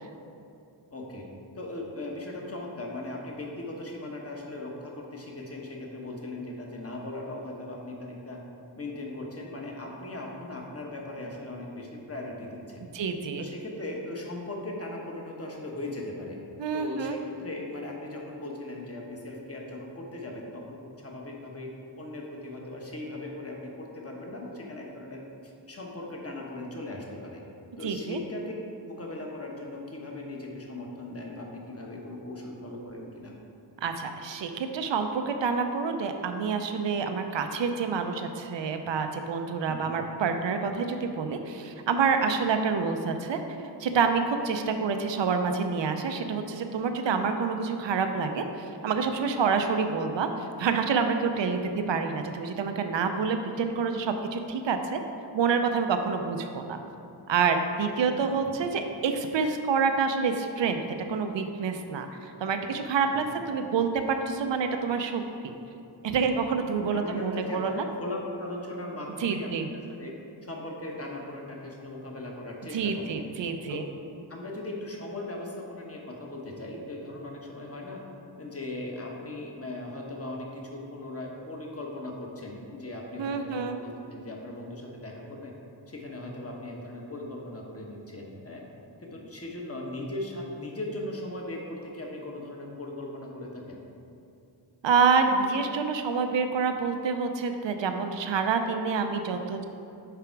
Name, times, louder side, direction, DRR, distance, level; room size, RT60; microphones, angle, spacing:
voice 1, 0.9-1.3 1.5-8.4 8.8-12.8 13.4-16.4 16.7-21.7 22.0-27.4 27.8-28.5 28.8-33.3 39.7-39.9 58.1-58.5 63.1-63.3 66.9-70.1 70.4-73.1 73.7-73.8 74.3-78.0 78.4-85.5 85.9-88.7 89.0-93.8, left 2 dB, 30° left, -1 dB, 1.1 m, -38 dB
voice 2, 12.9-13.5 16.6-17.2 27.8-28.2 33.8-43.4 43.8-48.4 48.8-51.6 51.9-55.0 55.3-56.8 57.3-60.8 61.1-65.5 66.0-67.8 69.2-69.7 72.7-73.8 83.2-83.8 94.8-99.6, right 5 dB, 75° right, 6 dB, 0.6 m, -27 dB
6.9 x 4.8 x 4.6 m, 2.6 s
wide cardioid pair, 80°, 45 cm